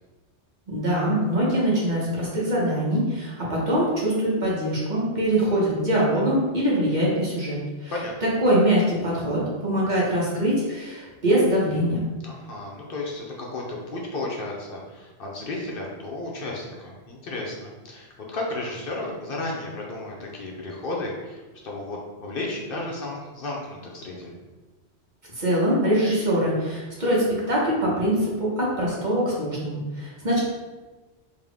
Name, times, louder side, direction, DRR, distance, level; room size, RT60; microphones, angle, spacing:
voice 1, 0.7-7.9 8.2-12.0 25.3-30.4, right 1 dB, 45° right, -5 dB, 1.2 m, -23 dB
voice 2, 12.2-24.4, left 2 dB, 60° left, -2 dB, 0.8 m, -33 dB
4.0 x 2.8 x 3.4 m, 1.2 s
omnidirectional pair, 1.1 m